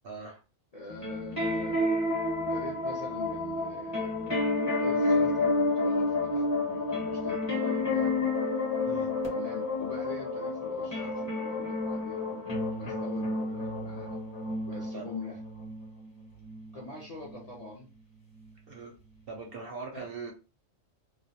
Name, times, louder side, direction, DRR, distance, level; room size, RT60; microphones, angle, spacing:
voice 1, 0.0-0.4 8.8-9.1 14.9-15.0 18.7-18.9 19.3-20.3, right 4 dB, 60° right, 1 dB, 0.6 m, -41 dB
voice 2, 0.7-2.0 2.5-4.4 4.7-8.2 9.3-14.2 14.6-15.4 16.7-17.9 19.9-20.1, left 4 dB, 50° left, -3 dB, 0.4 m, -44 dB
sound 1, 0.9-17.7 18.4-18.5, left 2 dB, 15° left, 0.8 m, -30 dB
2.3 x 2.0 x 2.7 m, 0.33 s
omnidirectional pair, 1.4 m